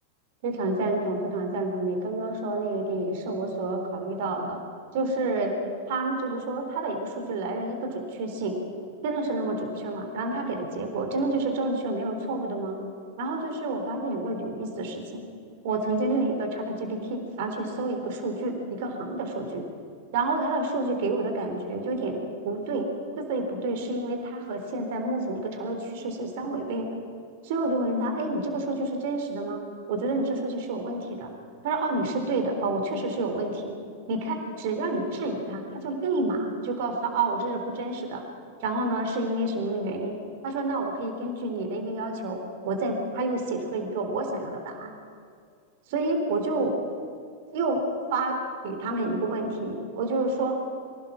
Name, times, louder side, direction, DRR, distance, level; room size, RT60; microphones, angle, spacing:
voice 1, 0.4-4.6 4.9-5.5 5.9-8.6 9.0-12.8 13.2-15.3 15.6-19.7 20.1-22.2 22.4-22.9 23.2-27.0 27.4-29.6 29.9-31.3 31.6-33.8 34.1-38.2 38.6-40.1 40.4-44.9 45.9-46.7 47.5-47.8 48.1-50.6, right 2 dB, 50° right, 4 dB, 3.9 m, -29 dB
25.0 x 18.0 x 6.1 m, 2.2 s
figure-of-eight pair, 90°, 0 cm